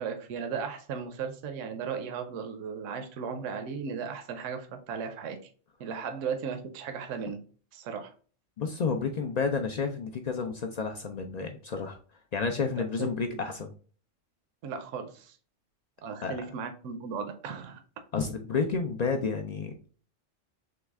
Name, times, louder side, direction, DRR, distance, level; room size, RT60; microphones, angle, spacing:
voice 1, 0.0-5.4 5.8-7.4 7.7-8.1 13.0-13.4 14.6-15.4 16.0-17.8, right 6 dB, 75° right, 7 dB, 1.0 m, -36 dB
voice 2, 8.6-12.0 12.3-13.7 16.2-16.4 18.1-19.7, left 5 dB, 80° left, 4 dB, 0.3 m, -30 dB
3.9 x 3.2 x 3.4 m, 0.41 s
omnidirectional pair, 1.4 m